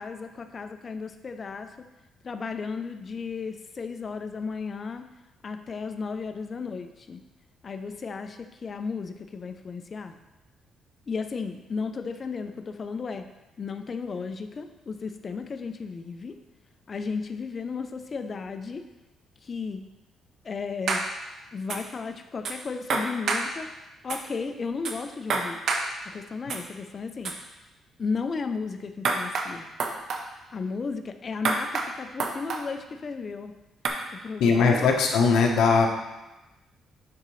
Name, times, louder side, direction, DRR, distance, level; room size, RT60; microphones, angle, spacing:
voice 1, 0.0-1.7 2.2-5.0 5.4-7.2 7.6-10.2 11.1-13.3 13.6-16.4 16.9-18.9 19.4-19.9 20.4-21.1 21.5-23.7 24.0-25.6 26.0-27.4 28.0-29.7 30.5-33.6 34.1-34.9, left 5 dB, 40° left, 8 dB, 0.6 m, -34 dB
sound 1, 20.9-21.1 21.7-21.8 22.4-22.5 22.9-23.5 24.1-24.2 24.8-24.9 25.3-25.9 26.5-26.6 27.2-27.3 29.0-29.5 29.8-30.2 31.4-31.9 32.2-32.6 33.8-33.9, right 4 dB, 65° right, 0.8 m, -27 dB
voice 2, 34.4-35.9, left 5 dB, 80° left, 1 dB, 1.0 m, -20 dB
10.5 x 3.9 x 3.2 m, 1.0 s
cardioid pair, 90°, 0 cm